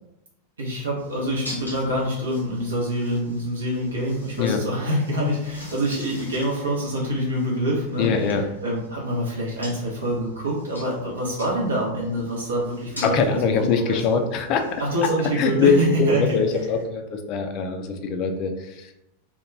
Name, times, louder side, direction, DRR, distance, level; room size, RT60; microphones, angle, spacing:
voice 1, 0.6-8.4 8.6-14.2 14.8-16.4, equal, 70° right, -4 dB, 0.6 m, -26 dB
sound 1, 1.0-16.8, left 1 dB, 85° left, 0.8 m, -45 dB
voice 2, 8.0-8.5 13.0-14.8 15.4-15.7 16.0-18.9, left 5 dB, 40° left, 5 dB, 0.3 m, -23 dB
2.2 x 2.2 x 3.0 m, 0.88 s
figure-of-eight pair, 90°, 0 cm